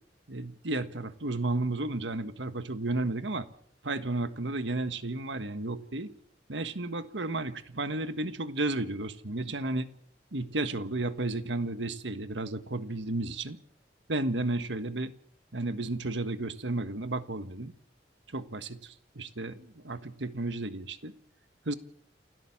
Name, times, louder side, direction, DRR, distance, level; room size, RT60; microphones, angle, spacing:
voice 1, 0.3-3.5 3.8-6.1 6.5-9.9 10.3-13.6 14.1-15.1 15.5-17.7 18.3-21.1 21.6-21.7, right 2 dB, 80° right, 10 dB, 1.5 m, -33 dB
28.5 x 12.5 x 7.3 m, 0.63 s
head